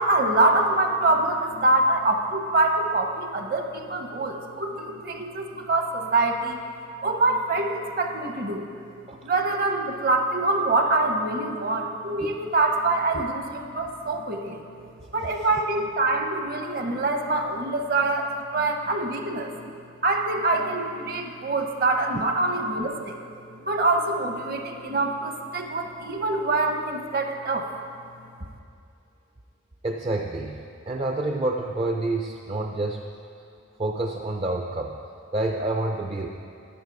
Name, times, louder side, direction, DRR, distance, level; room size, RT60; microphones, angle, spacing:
voice 1, 0.0-6.6 7.0-8.7 9.2-14.6 15.1-19.7 20.0-23.2 23.5-27.7, right 2 dB, 50° right, 4 dB, 0.9 m, -25 dB
voice 2, 29.8-33.0 33.8-35.0 35.3-36.3, right 2 dB, 30° right, 2 dB, 0.4 m, -28 dB
11.5 x 9.4 x 4.7 m, 2.5 s
head